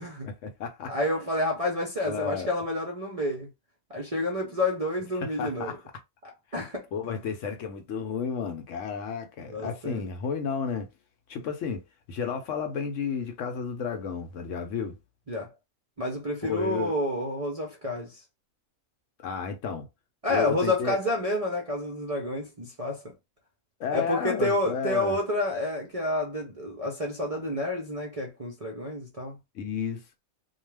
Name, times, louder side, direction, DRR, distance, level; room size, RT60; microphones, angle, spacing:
voice 1, 0.2-0.9 2.0-2.5 5.2-5.7 6.9-10.9 11.3-11.8 12.1-15.0 16.4-16.9 19.2-19.9 20.3-21.0 23.8-25.2 29.5-30.0, left 6 dB, 65° left, 0.9 m, -32 dB
voice 2, 0.9-3.5 3.9-5.8 6.2-7.2 9.5-10.0 15.3-15.5 16.0-18.2 20.2-23.1 23.9-29.4, left 1 dB, 40° right, 0.5 m, -29 dB
2.3 x 2.3 x 3.2 m
omnidirectional pair, 1.5 m